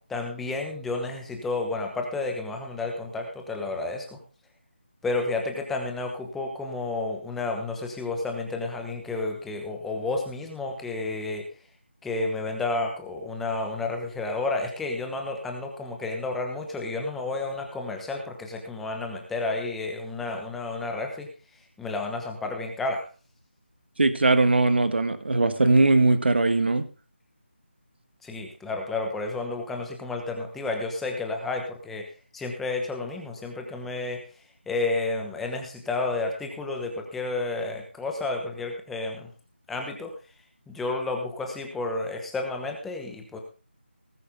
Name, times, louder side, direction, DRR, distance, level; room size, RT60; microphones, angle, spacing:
voice 1, 0.0-4.2 5.0-11.4 12.0-21.3 21.8-23.0 28.2-32.1 32.3-34.2 34.7-39.3 39.7-40.1 40.7-43.4, left 3 dB, 5° left, 3 dB, 1.0 m, -31 dB
voice 2, 24.0-26.9, right 2 dB, 60° right, 11 dB, 1.5 m, -20 dB
19.0 x 8.4 x 3.6 m, 0.35 s
figure-of-eight pair, 170°, 6 cm